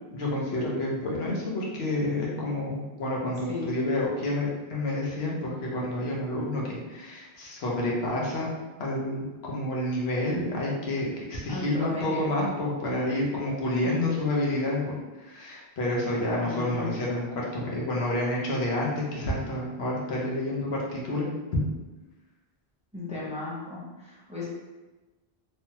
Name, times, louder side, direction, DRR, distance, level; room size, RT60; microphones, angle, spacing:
voice 1, 0.1-8.5 8.8-14.9 15.2-21.3 21.5-21.6, left 1 dB, 80° left, -3 dB, 1.0 m, -29 dB
voice 2, 11.5-12.2 13.8-14.2 16.4-16.9 22.9-24.5, left 3 dB, 10° right, -8 dB, 0.5 m, -34 dB
3.3 x 2.1 x 2.8 m, 1.1 s
omnidirectional pair, 1.0 m